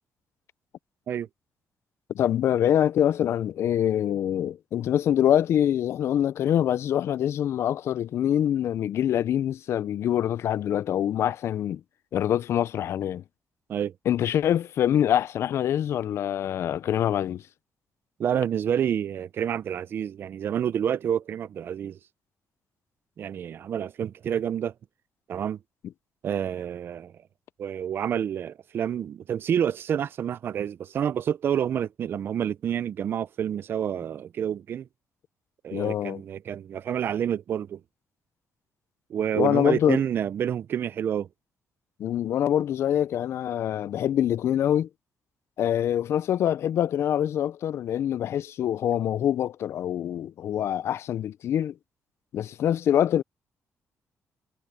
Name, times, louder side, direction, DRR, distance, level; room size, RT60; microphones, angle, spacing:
voice 1, 2.1-11.8 12.1-13.2 14.1-17.4 35.7-36.2 39.3-40.0 42.0-44.9 45.6-51.7 52.3-53.2, left 10 dB, 60° left, 0.4 m, -25 dB
voice 2, 18.2-22.0 23.2-24.7 25.3-25.6 26.2-27.1 27.6-34.9 35.6-37.8 39.1-41.3, right 9 dB, 45° right, 0.4 m, -28 dB
cardioid pair, 170°, 5 cm